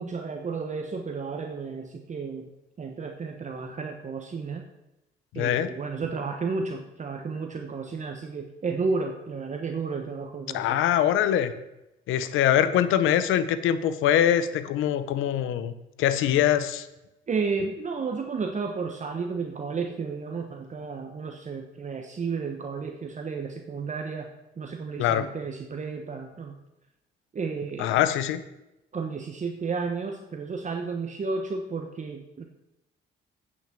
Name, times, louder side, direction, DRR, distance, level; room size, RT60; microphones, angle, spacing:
voice 1, 0.0-2.5 2.8-4.6 5.3-10.8 17.3-24.3 24.6-26.5 27.3-27.9 28.9-32.4, right 4 dB, 35° right, 4 dB, 1.0 m, -32 dB
voice 2, 5.4-5.7 10.5-11.5 12.1-15.7 16.0-16.9 25.0-25.3 27.8-28.4, left 10 dB, 90° left, 13 dB, 0.7 m, -23 dB
8.8 x 6.2 x 7.3 m, 0.91 s
cardioid pair, 90°, 20 cm